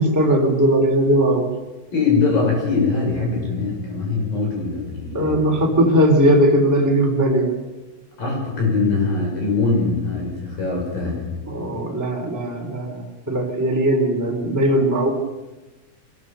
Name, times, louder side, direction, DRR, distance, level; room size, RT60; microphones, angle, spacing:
voice 1, 0.0-1.5 5.1-7.5 11.5-15.1, right 1 dB, 5° right, 0 dB, 2.8 m, -18 dB
voice 2, 1.9-5.4 8.2-11.2, left 4 dB, 90° left, 0 dB, 8.2 m, -22 dB
23.5 x 19.5 x 6.9 m, 1.1 s
omnidirectional pair, 3.9 m